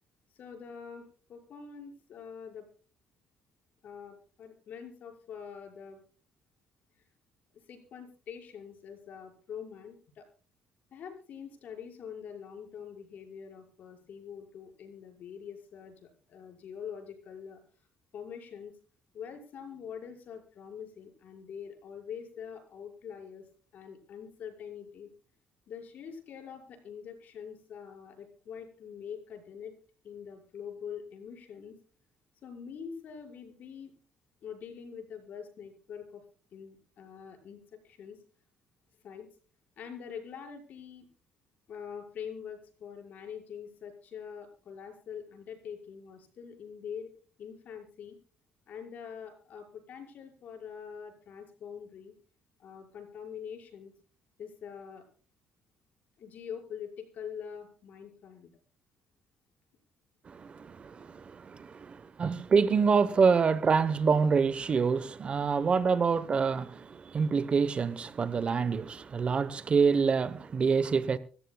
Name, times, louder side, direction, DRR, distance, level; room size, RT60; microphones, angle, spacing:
voice 1, 0.3-2.7 3.8-6.0 7.5-10.3 10.9-17.6 18.1-18.7 19.1-25.1 25.7-29.7 30.0-31.8 32.4-33.9 34.4-36.2 36.5-38.2 39.0-39.3 39.8-41.0 41.7-47.1 47.4-48.2 48.7-52.1 52.6-53.9 54.4-55.0 56.2-58.5, left 7 dB, 55° left, 5.7 m, -44 dB
voice 2, 60.3-71.2, right 5 dB, 35° right, 1.0 m, -26 dB
25.5 x 14.0 x 2.3 m
cardioid pair, 125°, 3 cm